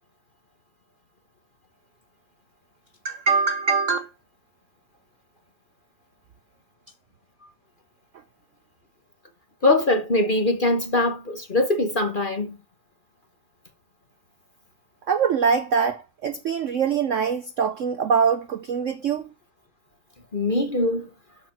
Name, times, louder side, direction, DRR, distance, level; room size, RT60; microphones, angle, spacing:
voice 1, 3.0-4.1 15.1-19.2, right 6 dB, 80° right, 0.6 m, -23 dB
voice 2, 9.6-12.6 20.3-21.1, left 2 dB, 35° left, 0.9 m, -22 dB
12.5 x 4.6 x 5.8 m
omnidirectional pair, 2.2 m